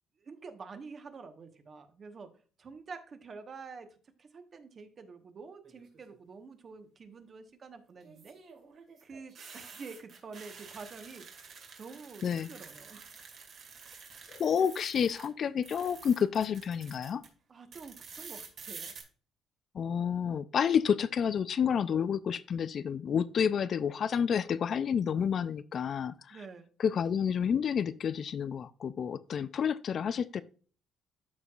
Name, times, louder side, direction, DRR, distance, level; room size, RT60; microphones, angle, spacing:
voice 1, 0.2-2.3 2.6-8.4 9.0-13.1 17.5-18.9 26.3-26.7, right 4 dB, 40° right, 8 dB, 1.2 m, -48 dB
sound 1, 5.6-6.1 8.0-15.3 15.6-17.3 17.7-19.0, right 5 dB, 55° right, 2.1 m, -49 dB
voice 2, 14.3-17.2 19.7-26.4 26.8-30.4, left 7 dB, 50° left, 15 dB, 0.4 m, -30 dB
13.0 x 4.7 x 2.4 m, 0.41 s
cardioid pair, 105°, 0 cm